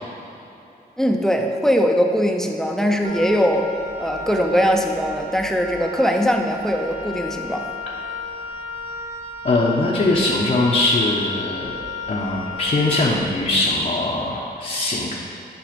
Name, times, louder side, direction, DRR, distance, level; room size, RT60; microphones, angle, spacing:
voice 1, 1.0-3.7 4.0-7.7, equal, 5° left, 3 dB, 0.7 m, -20 dB
Wind instrument woodwind instrument, 3.0-13.4, left 2 dB, 75° right, 2.1 m, -33 dB
voice 2, 9.4-11.8 12.1-15.1, left 2 dB, 50° left, -4 dB, 1.0 m, -21 dB
10.5 x 5.0 x 5.2 m, 2.9 s
wide cardioid pair, 100°, 17 cm